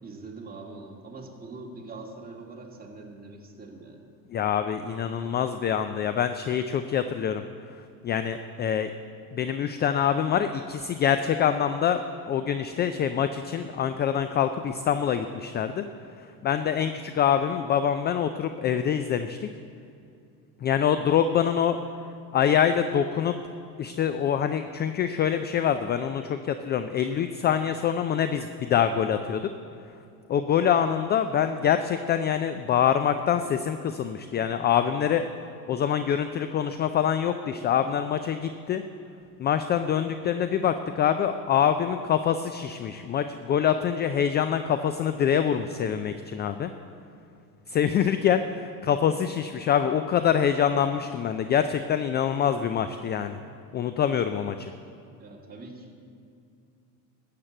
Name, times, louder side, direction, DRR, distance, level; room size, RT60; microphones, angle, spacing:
voice 1, 0.0-4.0 55.2-55.9, right 3 dB, 20° right, -1 dB, 2.4 m, -43 dB
voice 2, 4.3-7.4 7.7-8.9 9.3-15.9 16.2-19.5 20.6-21.8 22.3-23.4 23.8-29.5 30.3-35.3 35.7-38.8 39.4-46.7 47.7-53.4 53.7-54.7, left 8 dB, 25° left, 10 dB, 0.3 m, -25 dB
13.0 x 7.6 x 7.8 m, 2.5 s
hypercardioid pair, 80°, 49 cm